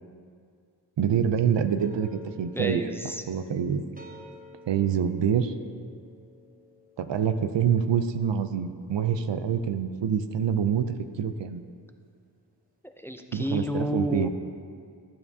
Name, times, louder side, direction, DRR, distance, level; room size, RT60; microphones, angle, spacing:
voice 1, 1.0-2.8 3.3-3.8 4.7-5.5 7.0-11.6 13.3-14.3, right 8 dB, 90° right, 10 dB, 0.5 m, -26 dB
sound 1, 1.8-11.0, left 2 dB, 20° right, 0.8 m, -52 dB
voice 2, 2.6-3.2 13.0-14.3, equal, 5° left, 5 dB, 0.4 m, -30 dB
11.5 x 6.9 x 2.7 m, 2.2 s
wide cardioid pair, 55°, 42 cm